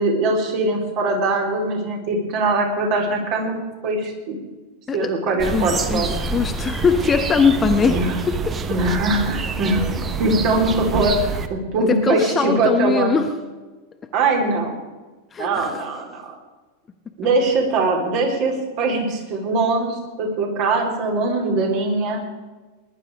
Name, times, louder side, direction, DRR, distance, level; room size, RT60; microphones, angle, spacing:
voice 1, 0.0-3.5 3.8-4.4 4.9-6.1 7.8-8.2 8.7-13.2 14.1-14.7 15.4-16.3 17.2-22.2, right 2 dB, 45° right, 1 dB, 4.2 m, -22 dB
sound 1, 5.4-11.5, right 4 dB, 20° right, 1.1 m, -26 dB
voice 2, 5.5-8.0 8.3-8.4 11.9-13.3 15.3-15.8, left 5 dB, 20° left, 6 dB, 1.2 m, -21 dB
21.0 x 11.5 x 5.0 m, 1.2 s
figure-of-eight pair, 90°, 0 cm